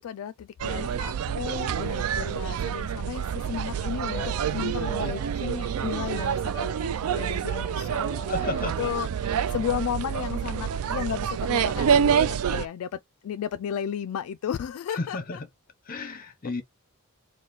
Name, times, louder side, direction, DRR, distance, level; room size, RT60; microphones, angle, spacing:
voice 1, 0.0-8.0 8.8-15.4, left 9 dB, 65° left, 0.3 m, -34 dB
sound 1, 0.6-12.7, right 8 dB, 70° right, 0.3 m, -27 dB
sound 2, 4.1-9.0, left 1 dB, 20° left, 1.2 m, -42 dB
voice 2, 8.3-8.8 14.9-15.5 15.9-16.6, left 2 dB, 40° left, 0.8 m, -32 dB
3.9 x 2.2 x 3.8 m
head